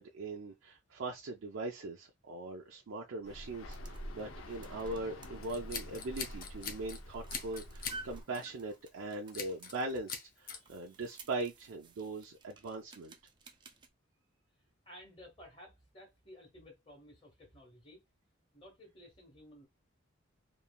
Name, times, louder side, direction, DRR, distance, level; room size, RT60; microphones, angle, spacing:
voice 1, 0.0-13.2, right 2 dB, 85° right, 0.5 m, -41 dB
sound 1, 3.2-8.2, equal, 85° left, 0.6 m, -47 dB
sound 2, 3.4-13.9, right 3 dB, 20° right, 0.3 m, -55 dB
Scissors, 5.4-7.0 7.3-8.0 8.3-8.6 9.3-9.8 10.1-10.6, left 6 dB, 45° left, 0.6 m, -42 dB
voice 2, 14.8-18.0 18.5-19.7, equal, 25° left, 1.4 m, -55 dB
3.1 x 2.5 x 2.2 m
head